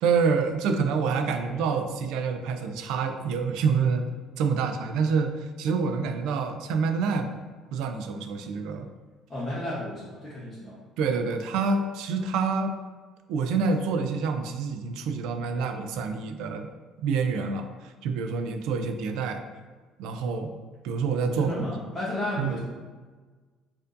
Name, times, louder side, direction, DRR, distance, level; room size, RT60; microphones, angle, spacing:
voice 1, 0.0-4.1 4.4-7.4 7.7-8.9 11.0-12.8 13.3-16.7 17.0-19.4 20.0-20.5 20.8-21.5 22.4-22.6, right 5 dB, 80° right, 7 dB, 0.3 m, -27 dB
voice 2, 9.3-10.7 21.4-22.6, left 1 dB, 10° left, -9 dB, 0.9 m, -32 dB
4.3 x 2.5 x 2.5 m, 1.4 s
cardioid pair, 120°, 0 cm